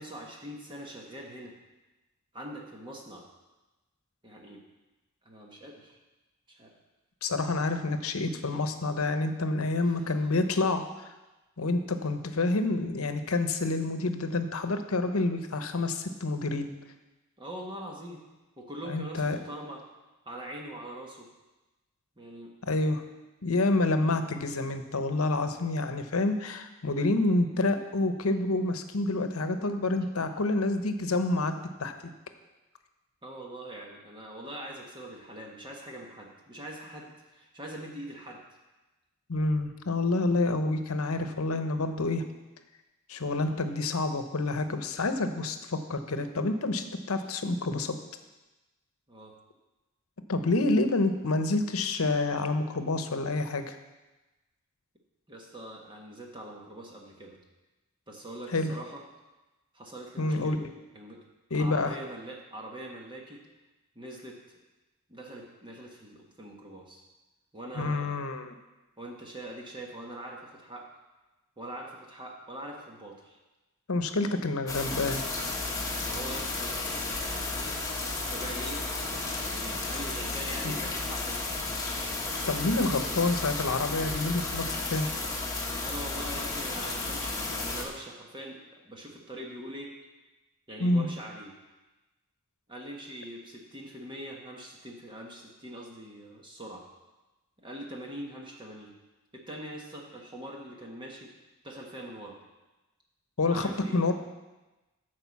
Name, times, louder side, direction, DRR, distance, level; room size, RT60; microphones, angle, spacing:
voice 1, 0.0-1.5 2.3-3.3 4.2-4.6 5.2-6.0 6.5-6.7 9.8-10.3 17.4-18.2 18.6-19.9 20.2-21.3 22.2-22.5 33.2-38.4 49.1-49.3 55.3-57.4 58.1-59.0 59.7-60.6 60.9-61.2 61.6-63.4 63.9-64.4 65.1-67.0 67.5-68.3 69.0-70.9 71.6-73.4 76.0-76.8 78.3-79.1 79.4-81.4 85.8-89.9 90.7-91.5 92.7-96.9 97.6-98.9 99.3-101.3 101.6-102.4 103.5-104.1, right 1 dB, 20° right, -1 dB, 1.3 m, -43 dB
voice 2, 7.2-10.8 11.6-16.7 18.9-19.4 22.7-23.0 23.4-31.9 39.3-42.2 43.1-47.9 50.3-53.8 58.5-58.7 60.2-60.7 61.5-62.0 67.8-68.5 73.9-75.2 80.6-80.7 82.5-85.1 90.8-91.1 103.4-104.1, left 2 dB, 80° left, 8 dB, 0.9 m, -28 dB
sound 1, 74.7-87.8, left 3 dB, 15° left, 1.4 m, -33 dB
12.0 x 4.9 x 7.2 m, 1.1 s
head